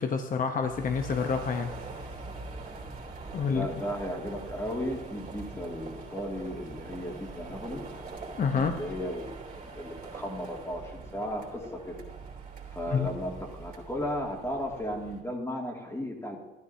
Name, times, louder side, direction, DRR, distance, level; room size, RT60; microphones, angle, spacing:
voice 1, 0.0-1.7 3.3-3.7 8.4-8.8 12.9-13.1, left 6 dB, 45° left, 6 dB, 0.8 m, -28 dB
sound 1, 0.6-15.2, right 3 dB, 45° right, 3.3 m, -43 dB
voice 2, 3.5-7.8 8.5-12.0 12.7-13.3 13.6-16.4, equal, 15° left, -1 dB, 2.3 m, -35 dB
13.0 x 11.0 x 2.7 m, 1.1 s
cardioid pair, 90°, 20 cm